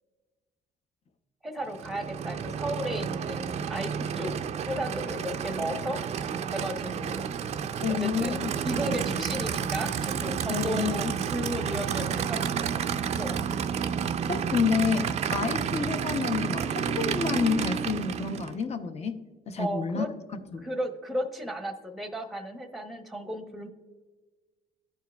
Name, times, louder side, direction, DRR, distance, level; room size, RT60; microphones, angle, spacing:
voice 1, 1.4-4.3 4.7-6.0 6.5-7.3 8.0-12.7 13.2-13.4 19.6-20.1 20.6-23.7, equal, ahead, 5 dB, 0.8 m, -34 dB
Aircraft / Idling, 1.7-18.6, right 7 dB, 40° right, 0.4 m, -31 dB
voice 2, 7.8-8.5 10.5-11.1 14.3-20.0 20.5-20.7, left 5 dB, 40° left, 8 dB, 0.7 m, -29 dB
12.5 x 4.6 x 2.3 m, 1.3 s
cardioid pair, 110°, 17 cm